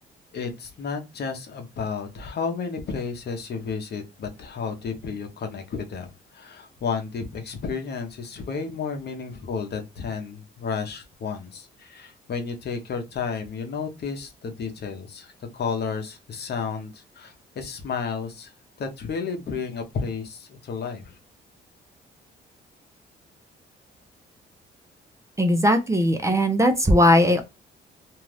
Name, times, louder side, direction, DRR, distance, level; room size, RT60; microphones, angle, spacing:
voice 1, 0.3-18.5 18.8-21.2, left 5 dB, 55° left, 0.9 m, -32 dB
voice 2, 25.4-27.4, equal, 15° right, 0.6 m, -19 dB
2.6 x 2.4 x 3.2 m
cardioid pair, 90°, 20 cm